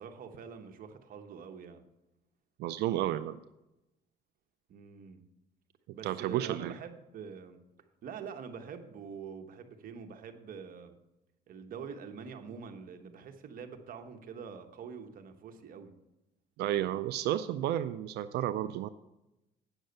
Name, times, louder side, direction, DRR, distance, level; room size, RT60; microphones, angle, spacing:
voice 1, 0.0-1.8 4.7-5.2 5.9-7.6 8.0-11.0 11.5-15.9, right 6 dB, 55° right, 7 dB, 1.1 m, -45 dB
voice 2, 2.6-3.4 6.0-6.7 16.6-18.9, right 12 dB, 75° right, 11 dB, 0.4 m, -32 dB
9.0 x 6.4 x 6.6 m, 0.92 s
cardioid pair, 110°, 17 cm